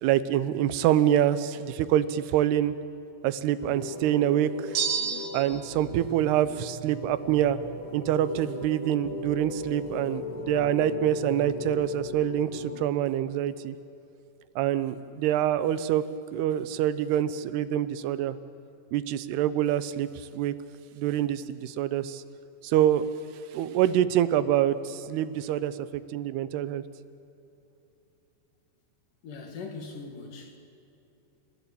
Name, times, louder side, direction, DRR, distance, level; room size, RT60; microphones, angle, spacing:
voice 1, 0.0-2.7 3.2-4.8 5.3-7.6 7.9-13.8 14.6-16.0 16.3-18.4 18.9-20.1 20.3-20.5 20.9-22.2 22.6-23.1 23.5-26.8, right 11 dB, 90° right, 15 dB, 2.9 m, -26 dB
sound 1, 3.6-12.8, left 4 dB, 85° left, 7.3 m, -38 dB
sound 2, 4.7-5.7, right 7 dB, 60° right, 2.8 m, -29 dB
voice 2, 29.2-30.6, left 4 dB, 60° left, 3 dB, 3.7 m, -40 dB
29.5 x 15.5 x 8.6 m, 2.9 s
omnidirectional pair, 4.6 m